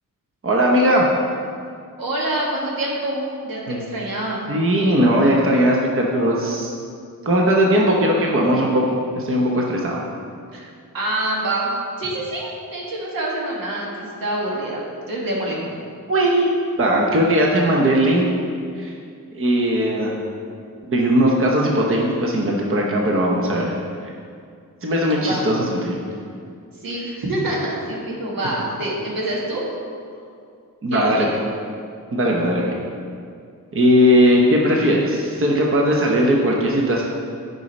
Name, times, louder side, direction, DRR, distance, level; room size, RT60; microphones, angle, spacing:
voice 1, 0.4-1.1 3.7-3.9 4.5-6.7 7.2-10.0 16.1-16.5 16.8-18.3 18.7-18.9 19.3-20.1 20.8-23.8 24.8-26.0 30.8-31.4 32.1-32.8 33.7-37.0, equal, 40° right, -1 dB, 0.9 m, -18 dB
voice 2, 2.0-4.5 10.5-10.7 10.9-15.6 25.2-25.4 26.8-29.6 30.9-31.1, right 1 dB, 90° right, -4 dB, 1.8 m, -26 dB
9.0 x 5.5 x 5.3 m, 2.4 s
wide cardioid pair, 160°, 33 cm